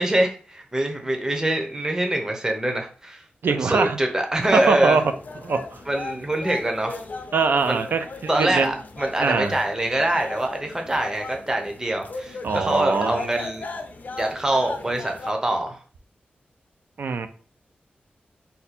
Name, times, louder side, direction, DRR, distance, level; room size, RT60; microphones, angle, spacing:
voice 1, 0.0-3.2 3.5-5.0 5.9-7.0 7.7-7.8 8.3-13.7 14.2-15.8, right 1 dB, 15° right, 3 dB, 0.6 m, -24 dB
voice 2, 3.4-4.0 4.5-5.0 5.4-5.8 7.3-8.7 9.2-9.6 12.4-13.2 17.0-17.3, right 5 dB, 75° right, 9 dB, 0.4 m, -22 dB
sound 1, 4.4-15.3, left 3 dB, 55° left, 0.4 m, -37 dB
2.7 x 2.2 x 4.1 m, 0.41 s
wide cardioid pair, 90°, 3 cm